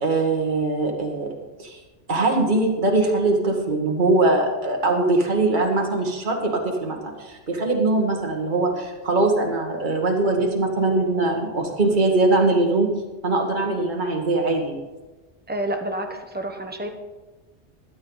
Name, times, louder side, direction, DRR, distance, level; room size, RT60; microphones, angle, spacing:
voice 1, 0.0-1.3 1.6-1.8 2.1-12.9 13.2-14.7, right 2 dB, 40° right, 0 dB, 1.8 m, -21 dB
voice 2, 15.5-16.9, right 1 dB, 10° right, 4 dB, 1.0 m, -29 dB
16.5 x 11.0 x 4.0 m, 1.2 s
omnidirectional pair, 1.2 m